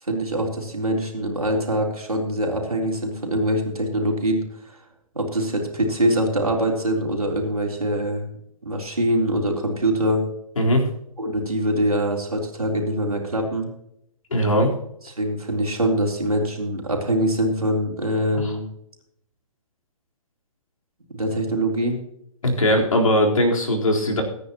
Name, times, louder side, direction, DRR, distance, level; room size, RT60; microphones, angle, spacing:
voice 1, 0.0-4.8 5.1-8.3 8.6-10.2 11.2-13.7 15.0-18.7 21.1-22.0, right 1 dB, 80° right, 0 dB, 3.7 m, -24 dB
voice 2, 10.6-10.9 14.3-14.7 22.4-24.2, equal, 65° left, 1 dB, 4.1 m, -19 dB
23.0 x 9.9 x 3.0 m, 0.75 s
figure-of-eight pair, 125°, 18 cm